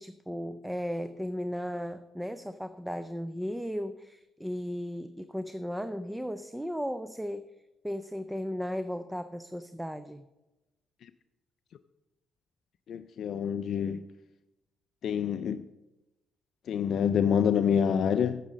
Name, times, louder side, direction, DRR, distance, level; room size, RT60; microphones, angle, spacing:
voice 1, 0.0-7.5 7.8-10.3, equal, 5° right, 0.5 m, -35 dB
voice 2, 12.9-14.0 15.0-15.6 16.7-18.4, left 8 dB, 65° left, 0.4 m, -27 dB
8.9 x 7.4 x 6.4 m
cardioid pair, 90°, 0 cm